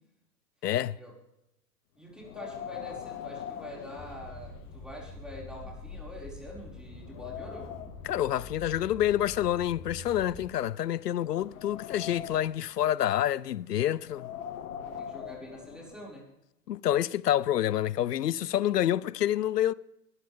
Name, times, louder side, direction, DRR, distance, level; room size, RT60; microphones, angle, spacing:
voice 1, 0.6-1.0 8.0-14.3 16.7-19.7, left 12 dB, 85° left, 0.6 m, -28 dB
voice 2, 1.9-7.7 15.0-16.3, left 1 dB, ahead, 5.5 m, -45 dB
Wind, 2.2-4.8 5.1-5.2 5.9-6.0 6.5-8.1 9.0-10.5 11.1-12.7 13.9-16.1, left 9 dB, 60° left, 2.0 m, -42 dB
sound 1, 3.9-10.5, left 3 dB, 15° left, 3.9 m, -45 dB
22.0 x 14.0 x 3.6 m
hypercardioid pair, 105°, 47 cm